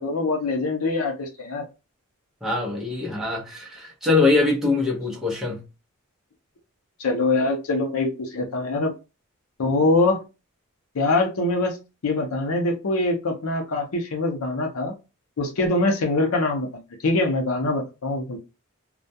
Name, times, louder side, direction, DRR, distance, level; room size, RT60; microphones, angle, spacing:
voice 1, 0.0-1.6 7.0-8.9 9.6-10.2 10.9-11.8 12.0-14.9 15.4-18.4, left 2 dB, 75° left, 0.6 m, -23 dB
voice 2, 2.4-5.6, left 3 dB, ahead, 0.7 m, -23 dB
2.2 x 2.2 x 2.6 m
head